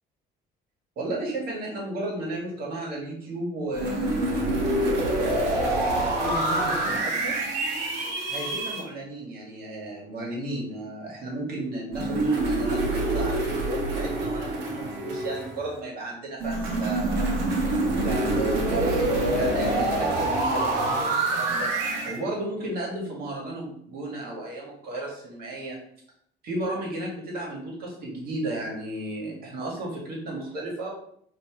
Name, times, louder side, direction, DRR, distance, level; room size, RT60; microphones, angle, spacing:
voice 1, 1.0-7.4 8.0-17.4 18.0-21.7 22.0-25.8 26.4-30.9, right 1 dB, 65° right, -2 dB, 1.9 m, -34 dB
sound 1, 3.7-8.8 11.9-15.7 16.4-22.2, right 2 dB, 85° right, 1.2 m, -26 dB
5.2 x 3.0 x 3.1 m, 0.68 s
cardioid pair, 110°, 17 cm